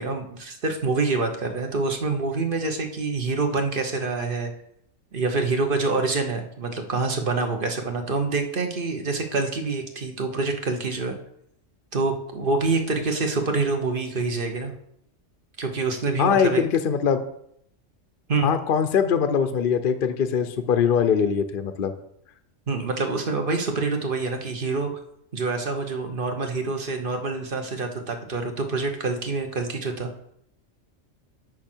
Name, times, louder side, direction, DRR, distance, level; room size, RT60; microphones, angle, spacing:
voice 1, 0.0-4.5 5.1-11.2 11.9-14.7 15.6-16.6 18.3-18.5 22.7-24.9 25.3-30.1, right 3 dB, 45° right, 5 dB, 1.3 m, -26 dB
voice 2, 16.2-17.2 18.4-21.9, left 7 dB, 50° left, 9 dB, 0.8 m, -22 dB
10.0 x 6.3 x 4.5 m, 0.72 s
omnidirectional pair, 1.3 m